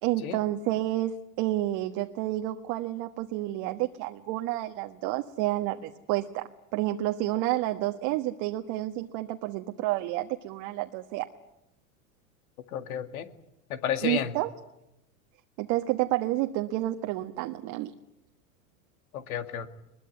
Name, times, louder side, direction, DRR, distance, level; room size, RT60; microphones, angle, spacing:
voice 1, 0.0-11.3 14.0-14.5 15.6-17.9, right 15 dB, 55° right, 5 dB, 1.5 m, -30 dB
voice 2, 12.7-13.3 13.7-14.3 19.1-19.7, left 9 dB, 75° left, 9 dB, 2.2 m, -31 dB
22.0 x 21.5 x 9.5 m, 0.86 s
hypercardioid pair, 100°, 43 cm